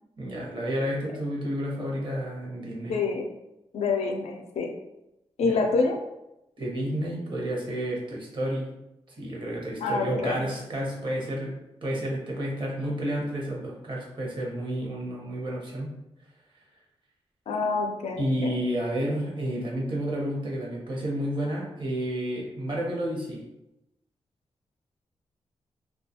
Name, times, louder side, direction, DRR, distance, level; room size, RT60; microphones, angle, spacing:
voice 1, 0.2-3.0 5.4-5.6 6.6-8.7 9.1-15.9 18.2-23.4, right 1 dB, 45° right, -3 dB, 0.8 m, -31 dB
voice 2, 2.6-3.3 3.7-4.7 5.4-6.0 9.8-10.4 17.5-18.5, left 4 dB, 75° left, 3 dB, 0.4 m, -27 dB
2.3 x 2.2 x 2.7 m, 0.91 s
cardioid pair, 85°, 11 cm